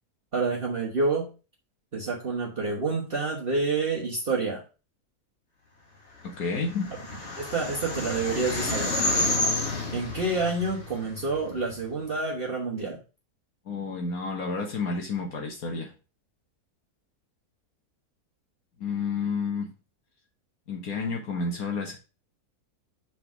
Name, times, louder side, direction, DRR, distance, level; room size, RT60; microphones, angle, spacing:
voice 1, 0.3-1.3 1.9-4.6 7.4-8.9 9.9-13.0, right 3 dB, 40° right, -3 dB, 1.2 m, -28 dB
sound 1, 6.3-11.8, left 2 dB, 50° left, 1.8 m, -30 dB
voice 2, 6.4-6.9 13.7-15.9 18.8-19.7 20.7-22.0, left 4 dB, 70° left, 1 dB, 1.7 m, -30 dB
6.0 x 4.1 x 5.9 m, 0.33 s
omnidirectional pair, 1.6 m